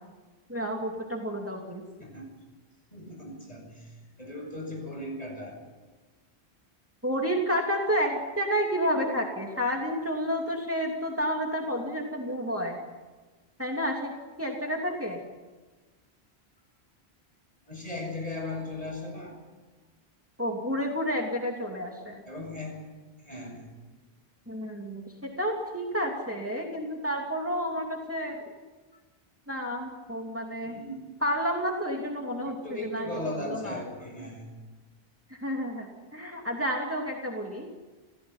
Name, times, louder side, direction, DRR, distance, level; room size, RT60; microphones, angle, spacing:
voice 1, 0.5-1.8 7.0-12.8 13.6-14.1 14.4-15.2 20.4-22.2 24.5-28.4 29.5-30.8 31.2-33.1 33.4-33.8 35.3-37.7, equal, 10° right, 0 dB, 2.8 m, -30 dB
voice 2, 2.0-2.3 2.9-5.6 17.7-19.4 22.3-22.8 23.2-23.7 30.6-31.0 32.6-34.5, left 2 dB, 35° left, 1 dB, 7.9 m, -37 dB
29.5 x 16.0 x 9.7 m, 1.3 s
omnidirectional pair, 1.1 m